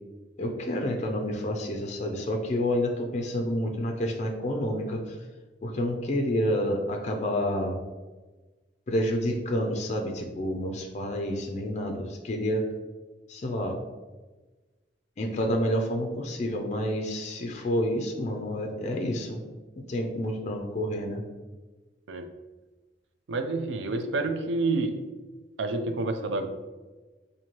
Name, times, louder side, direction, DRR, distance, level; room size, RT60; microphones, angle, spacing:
voice 1, 0.4-5.2 5.6-7.7 8.9-12.6 13.3-13.8 15.2-19.4 19.8-21.2, equal, 40° left, 2 dB, 0.4 m, -29 dB
voice 2, 23.3-25.0 25.6-26.5, right 3 dB, 80° right, 7 dB, 0.4 m, -28 dB
4.3 x 2.7 x 2.9 m, 1.2 s
head